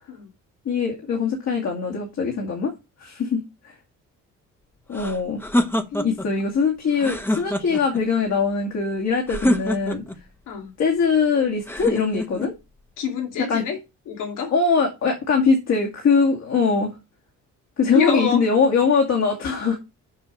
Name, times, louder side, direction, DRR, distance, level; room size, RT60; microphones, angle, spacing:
voice 1, 0.7-2.7 3.0-3.7 4.9-5.4 6.0-10.1 10.8-12.5 13.5-13.6 14.5-16.9 17.8-19.8, left 5 dB, 60° left, 2.4 m, -22 dB
sound 1, 4.9-6.3 6.9-8.0 9.3-10.2 11.7-12.5, left 1 dB, 5° left, 1.0 m, -25 dB
voice 2, 13.0-13.8 14.1-14.5 17.9-18.4, left 6 dB, 85° left, 2.3 m, -26 dB
7.3 x 5.5 x 5.2 m
cardioid pair, 90°, 30 cm